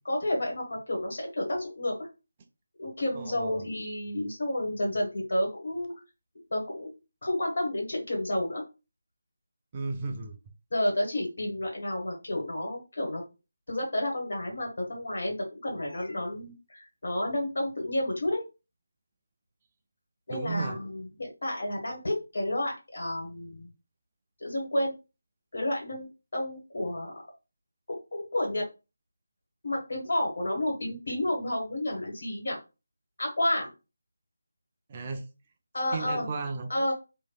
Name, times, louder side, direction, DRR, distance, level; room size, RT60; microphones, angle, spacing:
voice 1, 0.0-2.1 2.8-5.9 6.5-6.9 7.2-8.6 10.7-13.2 13.7-18.4 20.3-23.7 24.4-24.9 25.5-26.1 26.3-27.1 27.9-28.7 29.6-32.6 33.2-33.7 35.7-36.3 36.7-36.9, left 1 dB, 60° left, 1.4 m, -30 dB
voice 2, 3.1-3.7 9.7-10.3 20.3-20.8 34.9-35.2 35.9-36.7, right 4 dB, 30° right, 0.4 m, -34 dB
3.1 x 2.5 x 2.2 m
figure-of-eight pair, 160°, 0 cm